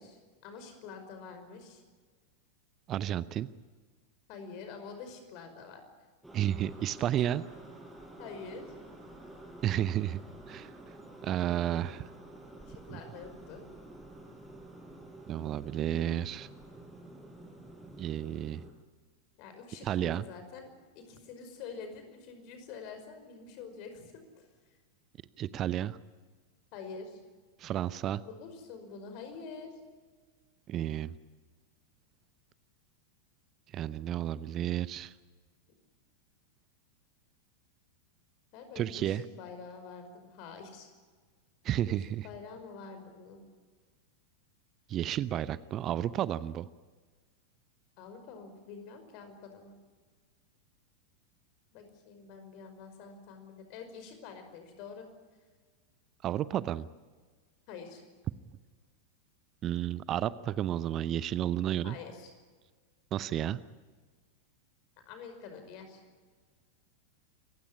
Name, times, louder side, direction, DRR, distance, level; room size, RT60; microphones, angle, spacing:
voice 1, 0.0-1.8 4.3-5.8 8.2-8.7 12.6-13.7 19.4-20.7 21.0-24.5 26.7-27.2 28.2-29.8 38.5-40.9 41.8-43.4 48.0-49.7 51.7-55.1 57.7-58.0 61.8-62.3 65.1-66.0, left 5 dB, 45° left, 7 dB, 5.2 m, -46 dB
voice 2, 2.9-3.5 6.3-7.4 9.6-10.2 10.5-10.7 11.2-12.1 12.9-13.0 15.3-16.5 18.0-18.6 19.8-20.2 25.4-26.0 27.6-28.2 30.7-31.1 33.7-35.1 38.8-39.2 41.6-42.3 44.9-46.7 56.2-56.9 59.6-62.0 63.1-63.6, right 11 dB, 30° right, 18 dB, 0.6 m, -32 dB
sound 1, 6.2-18.7, right 1 dB, 5° right, 5.2 m, -50 dB
27.5 x 15.5 x 9.9 m, 1.5 s
figure-of-eight pair, 90°, 0 cm